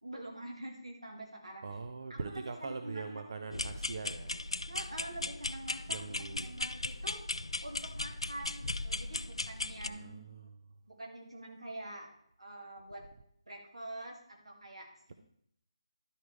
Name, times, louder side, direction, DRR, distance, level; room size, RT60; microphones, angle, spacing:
voice 1, 0.0-1.7 2.1-3.2 4.7-7.2 7.6-10.1 11.0-12.1 12.4-13.0 13.5-15.1, right 1 dB, 85° right, 1 dB, 2.5 m, -46 dB
voice 2, 1.6-4.4 5.9-6.5 9.9-10.5, right 4 dB, 50° right, 7 dB, 0.6 m, -42 dB
sound 1, 3.5-9.9, left 2 dB, 85° left, 0.4 m, -37 dB
11.5 x 4.8 x 4.8 m, 0.68 s
figure-of-eight pair, 155°, 3 cm